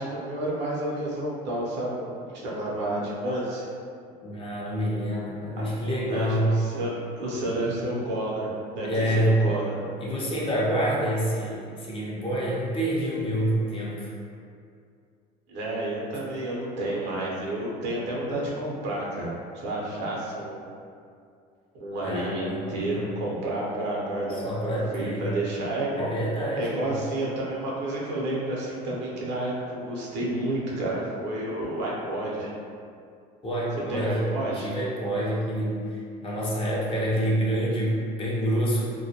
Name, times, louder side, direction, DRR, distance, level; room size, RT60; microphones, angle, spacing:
voice 1, 0.0-3.6 6.1-9.8 15.5-19.3 19.5-20.6 21.7-26.1 26.6-32.5 33.9-34.7, right 1 dB, 65° right, -5 dB, 0.7 m, -30 dB
voice 2, 4.2-6.6 8.8-9.5 10.0-14.1 22.0-23.0 24.4-25.3 26.0-26.9 33.4-38.9, right 1 dB, 25° left, -5 dB, 0.6 m, -27 dB
2.2 x 2.1 x 2.8 m, 2.4 s
supercardioid pair, 100°, 20 cm